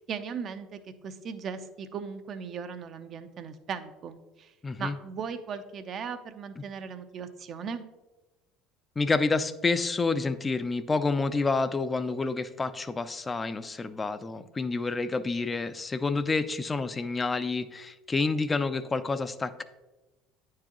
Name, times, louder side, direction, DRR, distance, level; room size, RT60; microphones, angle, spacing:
voice 1, 0.0-4.5 4.8-7.9, right 6 dB, 50° right, 10 dB, 0.6 m, -38 dB
voice 2, 4.6-5.0 9.0-19.6, left 3 dB, 25° left, 11 dB, 0.4 m, -28 dB
9.4 x 4.7 x 2.9 m, 1.1 s
hypercardioid pair, 70°, 0 cm